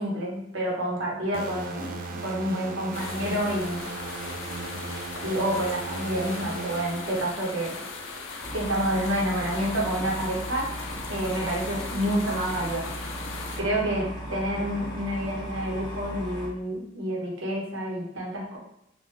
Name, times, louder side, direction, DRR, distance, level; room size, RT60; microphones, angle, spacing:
voice 1, 0.0-1.9 2.2-3.8 5.2-7.7 8.5-10.7 11.1-13.0 13.6-18.6, right 1 dB, 90° right, -3 dB, 1.0 m, -28 dB
sound 1, 1.3-7.8, right 2 dB, 45° right, 0.5 m, -37 dB
sound 2, 2.9-13.6, left 3 dB, 80° left, 0.5 m, -39 dB
sound 3, 8.4-16.5, equal, 20° left, 0.6 m, -37 dB
3.3 x 2.5 x 3.3 m, 0.83 s
head